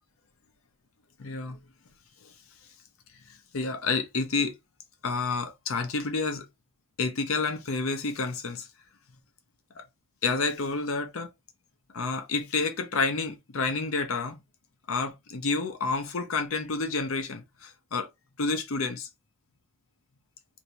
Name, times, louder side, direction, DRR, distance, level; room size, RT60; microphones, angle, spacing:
voice 1, 1.2-1.6 2.2-2.3 3.3-4.5 5.0-6.4 7.0-8.7 9.8-9.9 10.2-11.3 11.9-14.4 14.9-18.1 18.4-19.1, left 4 dB, 65° left, 0.6 m, -29 dB
2.8 x 2.7 x 4.3 m
head